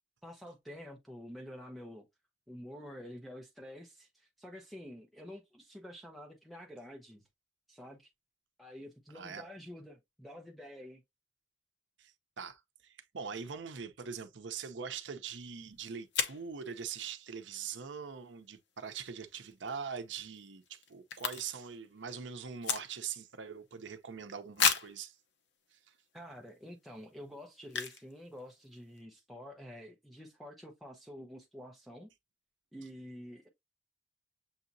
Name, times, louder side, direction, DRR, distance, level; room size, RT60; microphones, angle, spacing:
voice 1, 0.2-2.1 2.5-7.2 7.7-8.1 8.6-11.0 26.1-32.1 32.7-33.5, equal, ahead, 0.8 m, -48 dB
voice 2, 9.1-9.4 12.0-25.2 25.7-25.9, right 6 dB, 75° right, 0.7 m, -43 dB
sound 1, 15.5-15.6 16.1-16.5 19.4-19.7 20.0-20.1 20.3-21.8 22.0-23.3 23.7-23.8 24.6-25.0 25.7-25.8 26.3-26.5 27.7-28.1 28.4-28.5 28.6-29.0, left 6 dB, 65° left, 0.8 m, -33 dB
7.1 x 2.8 x 2.6 m
head